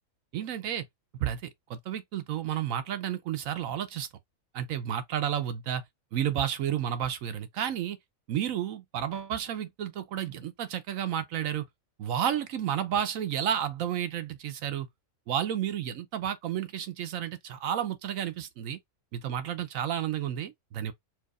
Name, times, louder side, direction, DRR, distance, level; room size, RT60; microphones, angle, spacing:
voice 1, 0.3-0.8 1.2-4.1 4.5-5.8 6.1-8.0 8.3-11.6 12.0-14.9 15.3-18.8 19.1-20.9, right 10 dB, 75° right, 1.0 m, -31 dB
4.6 x 2.5 x 2.3 m
omnidirectional pair, 1.5 m